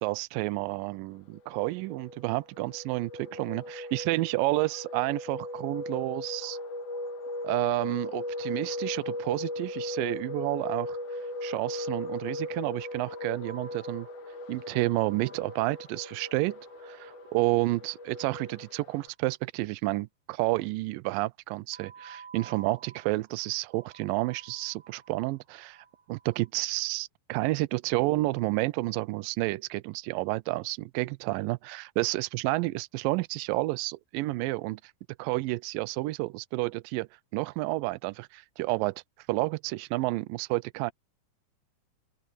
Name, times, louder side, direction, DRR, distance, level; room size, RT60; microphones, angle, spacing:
voice 1, 0.0-6.6 7.4-11.0 11.4-14.1 14.5-25.8 26.1-34.8 35.2-39.0 39.3-40.9, right 21 dB, 80° right, 2.2 m, -30 dB
sound 1, 1.3-19.1, left 1 dB, 85° left, 3.7 m, -38 dB
sound 2, 13.5-18.8 21.7-26.5, right 6 dB, 60° right, 6.5 m, -53 dB
open air
omnidirectional pair, 4.2 m